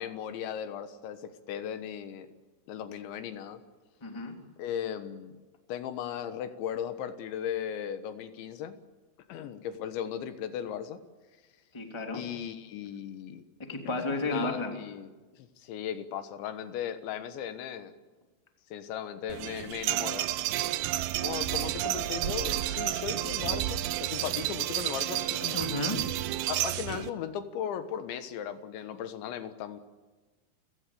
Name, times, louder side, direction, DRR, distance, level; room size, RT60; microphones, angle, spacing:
voice 1, 0.0-2.3 2.7-3.6 4.6-5.3 5.7-8.8 9.3-11.0 12.1-13.4 14.1-17.9 18.7-20.3 21.2-25.7 26.5-29.8, left 9 dB, 75° left, 10 dB, 3.5 m, -37 dB
voice 2, 4.0-4.4 11.7-12.3 13.6-14.7 25.5-26.0, left 2 dB, 5° left, 4 dB, 2.4 m, -32 dB
sound 1, 19.3-27.1, right 14 dB, 80° right, 2.3 m, -31 dB
sound 2, 24.1-25.1 26.6-27.0, right 10 dB, 60° right, 3.0 m, -43 dB
29.0 x 16.5 x 8.5 m, 1.3 s
omnidirectional pair, 5.5 m